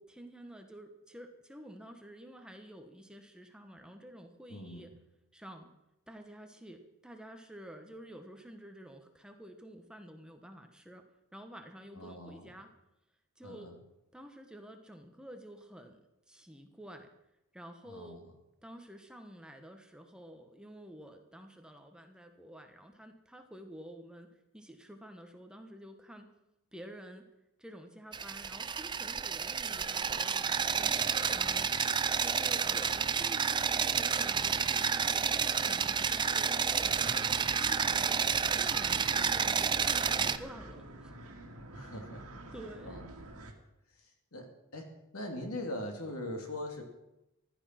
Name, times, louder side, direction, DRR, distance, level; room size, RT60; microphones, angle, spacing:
voice 1, 0.0-4.9 5.3-5.7 6.1-11.0 11.3-12.7 13.4-13.7 14.1-16.0 16.3-17.1 17.5-18.2 18.6-26.3 26.7-27.3 27.6-31.0 31.3-31.7 32.2-38.2 38.6-41.1 41.8-41.9 42.5-43.0, equal, 5° right, 5 dB, 1.2 m, -50 dB
voice 2, 4.5-4.9 11.9-12.5 13.4-13.8 17.8-18.3 36.9-37.3 40.2-40.4 41.7-42.5 42.8-43.0 43.9-46.8, left 1 dB, 70° left, 4 dB, 2.7 m, -42 dB
sound 1, 28.1-40.4, right 6 dB, 20° right, 0.5 m, -30 dB
sound 2, 36.7-43.5, right 2 dB, 75° right, 2.3 m, -48 dB
15.0 x 12.5 x 5.9 m, 0.91 s
head